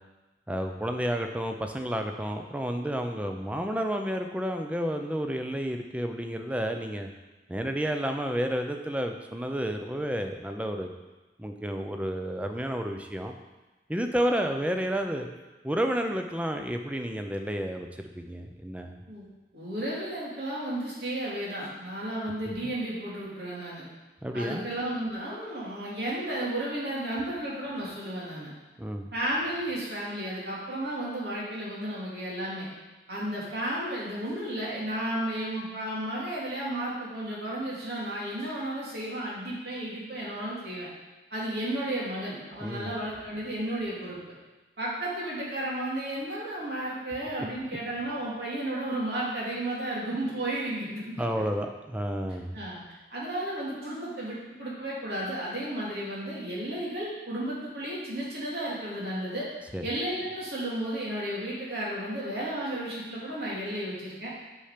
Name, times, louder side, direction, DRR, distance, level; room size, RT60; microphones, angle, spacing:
voice 1, 0.5-7.1 7.5-10.9 11.4-13.3 13.9-15.3 15.6-17.9 18.2-19.0 24.2-24.7 28.8-29.1 42.6-42.9 51.2-52.6 59.7-59.8, equal, 10° right, 4 dB, 0.5 m, -31 dB
voice 2, 19.5-23.9 24.3-28.5 29.1-32.7 33.1-40.9 41.3-44.2 44.8-51.4 52.5-52.8 53.1-59.4 59.8-64.3, right 1 dB, 70° right, -6 dB, 2.8 m, -33 dB
8.6 x 5.8 x 5.1 m, 1.2 s
head